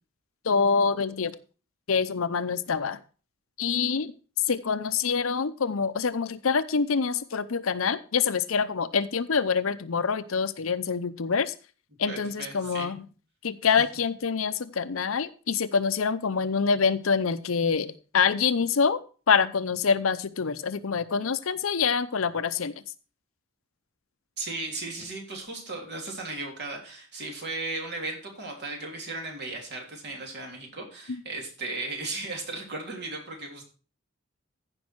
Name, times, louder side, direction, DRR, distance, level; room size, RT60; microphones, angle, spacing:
voice 1, 0.4-1.3 1.9-3.0 3.6-4.1 4.5-11.5 12.0-13.0 13.4-19.0 19.3-22.7, left 5 dB, 70° left, 13 dB, 0.7 m, -26 dB
voice 2, 12.1-12.9 24.4-33.6, right 2 dB, 55° right, 1 dB, 3.4 m, -36 dB
15.0 x 5.4 x 4.5 m, 0.37 s
head